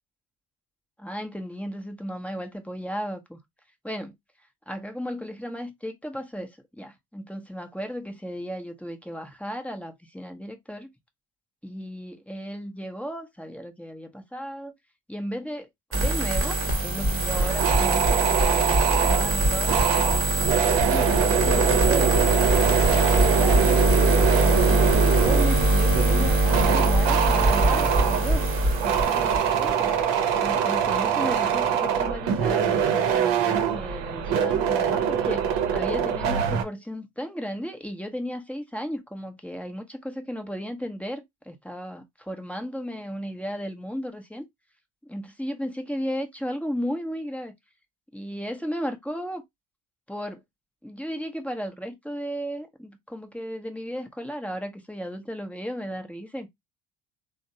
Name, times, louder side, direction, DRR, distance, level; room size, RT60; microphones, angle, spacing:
voice 1, 1.0-3.4 3.8-4.1 4.7-10.9 11.6-14.7 15.1-15.7 15.9-20.5 20.8-23.8 24.4-28.5 28.8-30.0 30.4-35.4 35.7-44.5 45.0-47.5 48.1-49.4 50.1-50.4 50.8-56.5, equal, 5° left, 0.7 m, -35 dB
sound 1, 15.9-29.7, right 1 dB, 25° right, 1.1 m, -22 dB
sound 2, 17.3-36.6, right 8 dB, 60° right, 0.8 m, -24 dB
3.3 x 2.1 x 2.6 m
hypercardioid pair, 60°, 49 cm